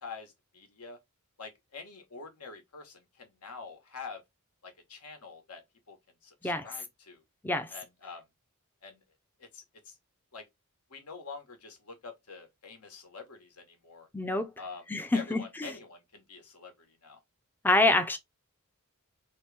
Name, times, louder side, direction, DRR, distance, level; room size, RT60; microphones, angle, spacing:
voice 1, 0.0-1.0 1.4-4.2 4.6-5.6 5.9-6.0 6.2-7.2 7.7-8.2 8.8-9.0 9.4-9.9 10.3-10.4 10.9-14.1 14.6-14.9 15.1-17.2, left 4 dB, 85° left, 1.3 m, -46 dB
voice 2, 14.1-14.5 14.9-15.7 17.6-18.2, left 2 dB, 10° left, 0.4 m, -26 dB
3.0 x 2.9 x 3.3 m
head